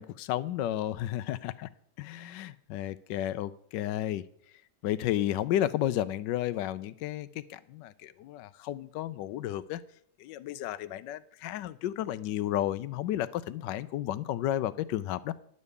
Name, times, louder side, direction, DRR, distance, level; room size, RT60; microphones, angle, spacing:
voice 1, 0.0-1.7 2.0-4.2 4.8-9.8 10.2-15.3, left 12 dB, 75° left, 16 dB, 1.2 m, -32 dB
11.0 x 5.3 x 8.0 m, 0.66 s
omnidirectional pair, 2.1 m